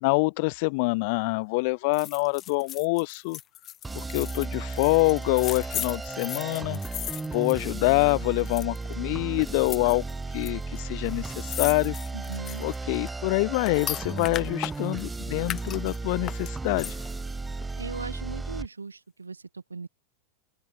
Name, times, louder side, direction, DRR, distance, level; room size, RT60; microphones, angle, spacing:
voice 1, 0.0-3.4 3.9-6.8 7.3-10.1 10.3-12.0 12.6-17.0, left 28 dB, 45° left, 0.8 m, -26 dB
sound 1, 1.9-8.1 8.4-8.9 9.5-10.5 10.8-10.9 11.1-15.0 15.4-17.2 17.6-17.7, left 11 dB, 30° left, 1.5 m, -37 dB
sound 2, 3.8-18.7, right 3 dB, 10° right, 1.6 m, -35 dB
voice 2, 12.1-12.7 17.8-19.9, right 4 dB, 75° right, 4.8 m, -38 dB
open air
figure-of-eight pair, 90°, 0 cm